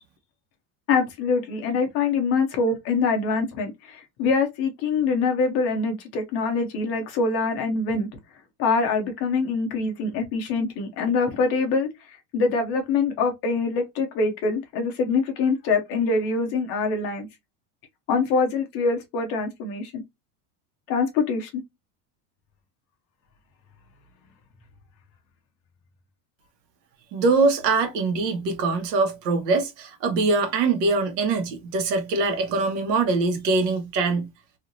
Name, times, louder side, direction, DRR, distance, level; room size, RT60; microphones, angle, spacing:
voice 1, 0.9-8.1 8.6-11.9 12.3-17.3 18.1-20.0 20.9-21.6, left 4 dB, 30° left, 0.6 m, -24 dB
voice 2, 27.1-34.3, right 3 dB, 75° right, 1.2 m, -23 dB
3.1 x 2.8 x 2.5 m
supercardioid pair, 175°, 50 cm